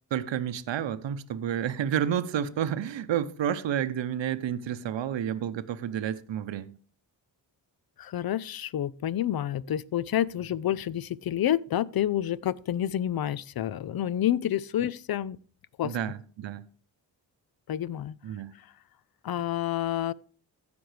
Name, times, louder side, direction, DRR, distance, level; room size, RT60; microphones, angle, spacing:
voice 1, 0.1-6.8 15.8-16.6 18.2-18.5, right 9 dB, 70° right, 0.8 m, -30 dB
voice 2, 8.0-15.4 15.8-16.0 17.7-18.2 19.2-20.1, left 11 dB, 55° left, 0.6 m, -29 dB
15.0 x 5.2 x 3.3 m
cardioid pair, 55°, 45 cm